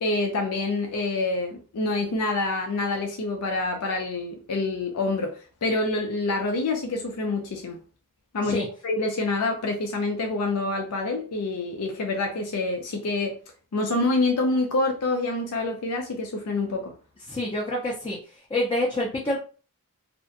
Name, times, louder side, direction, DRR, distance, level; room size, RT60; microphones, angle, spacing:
voice 1, 0.0-7.8 8.3-13.4 13.7-16.9, left 2 dB, 85° left, 0.5 m, -27 dB
voice 2, 17.3-18.2 18.5-19.4, left 1 dB, 20° left, 0.4 m, -27 dB
2.5 x 2.1 x 2.5 m
head